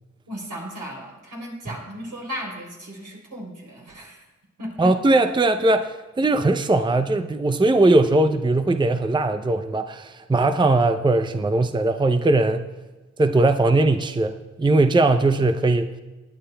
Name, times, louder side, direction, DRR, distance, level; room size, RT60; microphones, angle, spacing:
voice 1, 0.3-4.2 4.6-4.9, equal, 85° right, -2 dB, 3.6 m, -35 dB
voice 2, 4.8-12.7 13.2-15.9, right 2 dB, 15° right, 8 dB, 0.5 m, -20 dB
20.0 x 9.5 x 2.2 m, 1.2 s
cardioid pair, 55°, 29 cm